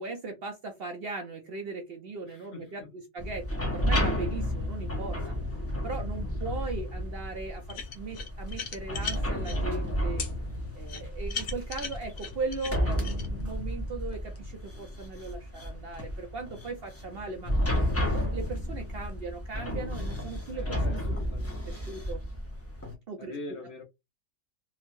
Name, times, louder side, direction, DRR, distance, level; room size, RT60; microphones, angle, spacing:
voice 1, 0.0-5.3 5.8-10.2 10.7-17.5 18.0-21.2 21.7-22.2 23.1-23.4, right 3 dB, 60° right, 0.6 m, -38 dB
voice 2, 2.3-2.7 20.5-22.0 23.2-23.8, left 2 dB, 55° left, 0.9 m, -43 dB
sound 1, 3.2-22.9, equal, 20° left, 0.4 m, -32 dB
sound 2, 7.7-9.6 10.2-10.3 10.9-13.3, left 5 dB, 75° left, 1.2 m, -37 dB
2.9 x 2.3 x 2.5 m
omnidirectional pair, 1.4 m